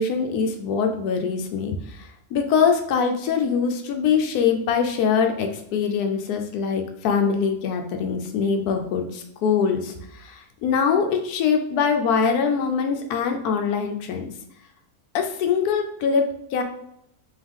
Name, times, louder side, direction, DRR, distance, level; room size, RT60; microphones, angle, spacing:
voice 1, 0.0-14.3 15.1-16.6, left 6 dB, 85° left, 5 dB, 1.1 m, -23 dB
3.6 x 3.1 x 3.5 m, 0.76 s
omnidirectional pair, 1.6 m